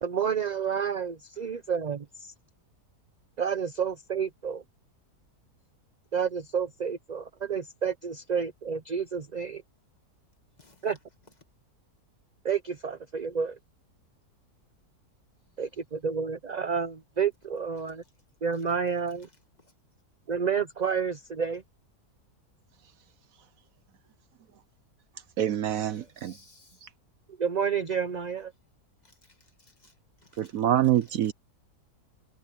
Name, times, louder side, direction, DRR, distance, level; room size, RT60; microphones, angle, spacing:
voice 1, 0.0-2.3 3.4-4.6 6.1-9.6 10.8-11.0 12.4-13.6 15.6-18.0 18.4-19.3 20.3-21.6 27.4-28.5, right 6 dB, 40° right, 0.6 m, -30 dB
voice 2, 10.6-10.9 17.8-18.1 18.5-18.6 19.2-19.7 25.7-26.9 29.0-30.6 31.0-31.3, left 2 dB, 25° left, 2.0 m, -59 dB
voice 3, 25.4-26.3 26.8-26.9 30.4-31.3, right 11 dB, 65° right, 1.0 m, -26 dB
omnidirectional pair, 1.7 m